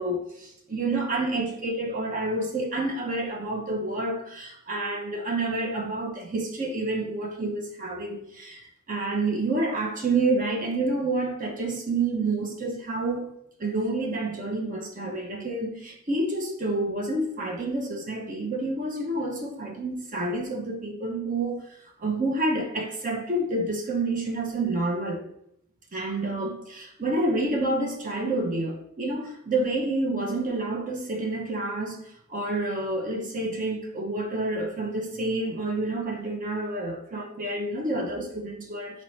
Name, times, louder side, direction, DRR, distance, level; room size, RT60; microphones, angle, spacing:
voice 1, 0.0-13.3 13.6-21.6 22.0-25.2 25.9-32.0 32.3-39.0, right 2 dB, 35° right, 1 dB, 0.6 m, -28 dB
4.1 x 4.1 x 3.1 m, 0.74 s
head